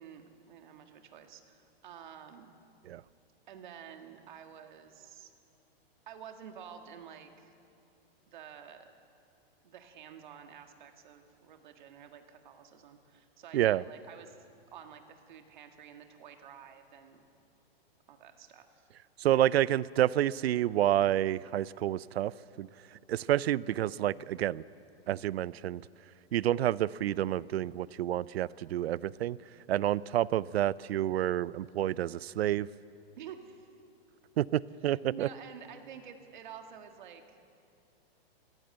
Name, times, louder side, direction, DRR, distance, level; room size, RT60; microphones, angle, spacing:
voice 1, 0.0-2.5 3.5-5.3 6.1-7.5 8.3-8.9 9.6-14.4 14.7-17.2 18.1-18.9 33.2-33.7 34.8-37.4, right 8 dB, 50° right, 6 dB, 1.7 m, -50 dB
voice 2, 19.2-22.7 23.1-24.6 25.1-25.8 26.3-29.4 29.7-32.7 34.4-35.3, right 12 dB, 80° right, 21 dB, 0.5 m, -29 dB
22.5 x 16.0 x 7.7 m, 2.6 s
hypercardioid pair, 175°, 31 cm